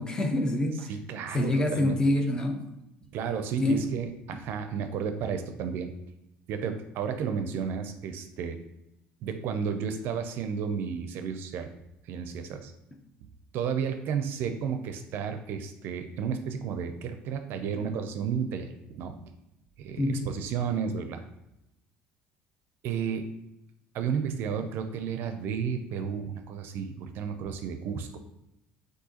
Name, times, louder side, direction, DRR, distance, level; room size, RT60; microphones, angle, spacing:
voice 1, 0.0-0.9 1.3-2.7 3.6-3.9 20.0-20.3, left 1 dB, 20° left, 4 dB, 0.7 m, -26 dB
voice 2, 0.9-2.0 3.1-5.9 6.5-8.6 9.2-11.7 12.0-12.7 13.5-19.3 19.8-21.2 22.8-23.3 23.9-28.2, right 7 dB, 60° right, 7 dB, 0.4 m, -32 dB
6.2 x 2.6 x 2.8 m, 0.88 s
cardioid pair, 135°, 4 cm